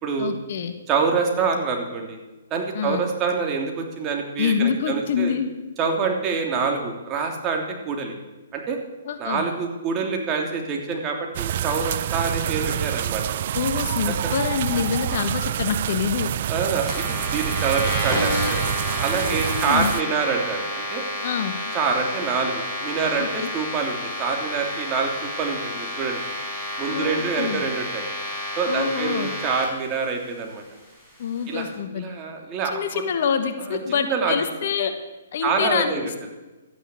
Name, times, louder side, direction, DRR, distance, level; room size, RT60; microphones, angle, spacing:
voice 1, 0.2-0.7 2.7-3.1 4.4-5.5 9.0-9.4 13.5-16.3 19.1-19.9 21.2-21.5 23.2-23.5 26.9-27.6 28.7-29.3 31.2-32.0 32.7-34.9 35.3-36.3, left 7 dB, 55° left, 8 dB, 1.5 m, -26 dB
voice 2, 0.9-2.2 2.5-5.3 5.8-8.1 8.5-8.8 9.2-13.2 14.2-14.3 14.7-14.8 16.5-17.0 17.3-18.6 19.0-21.0 21.7-25.1 25.4-26.2 26.8-28.0 28.6-30.6 31.5-31.7 31.9-32.8 33.7-34.3 35.4-36.1, right 5 dB, 25° right, 2 dB, 3.0 m, -26 dB
sound 1, 11.3-20.0, right 11 dB, 50° right, 0.4 m, -27 dB
sound 2, 16.9-29.6, left 1 dB, 5° left, 5.4 m, -30 dB
13.0 x 9.8 x 8.2 m, 1.1 s
hypercardioid pair, 135°, 0 cm